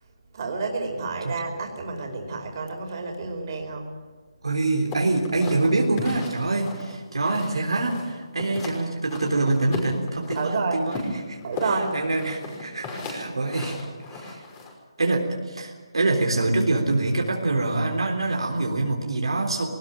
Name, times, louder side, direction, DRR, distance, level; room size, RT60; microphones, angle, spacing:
voice 1, 0.3-3.9 10.3-10.8 11.4-12.0, right 4 dB, 45° right, 3 dB, 4.8 m, -29 dB
voice 2, 4.4-11.0 11.3-11.4 11.9-13.8 14.1-14.4 15.0-19.6, right 2 dB, 80° right, 1 dB, 3.6 m, -25 dB
sound 1, 4.9-7.6 7.9-8.8 9.1-10.5 10.9-14.7, left 3 dB, 25° left, 5.8 m, -35 dB
21.0 x 19.5 x 9.1 m, 1.3 s
figure-of-eight pair, 150°, 3 cm